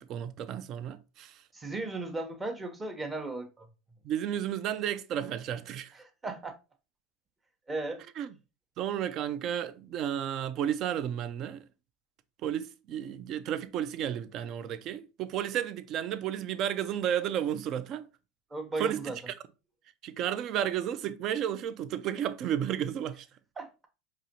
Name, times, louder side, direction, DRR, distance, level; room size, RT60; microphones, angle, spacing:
voice 1, 0.0-1.4 4.0-5.9 8.2-8.3 8.8-11.6 12.4-18.1 18.8-19.3 20.0-23.3, right 10 dB, 50° right, 0.4 m, -32 dB
voice 2, 1.5-3.7 6.0-6.5 7.7-8.0 18.5-19.2 23.6-23.7, right 2 dB, 20° right, 0.9 m, -36 dB
4.8 x 3.0 x 2.8 m
supercardioid pair, 110°, 0 cm